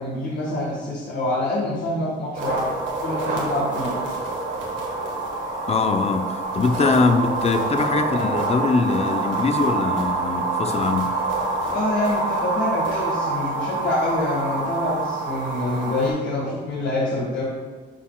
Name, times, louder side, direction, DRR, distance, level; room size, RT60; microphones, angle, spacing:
voice 1, 0.0-2.6 3.0-3.9 11.6-17.4, left 2 dB, 65° left, -6 dB, 1.6 m, -26 dB
sound 1, 2.3-16.1, right 3 dB, 70° right, 1.6 m, -26 dB
voice 2, 5.7-11.2, left 4 dB, 30° left, 7 dB, 0.6 m, -22 dB
11.5 x 4.1 x 2.4 m, 1.4 s
cardioid pair, 90°, 20 cm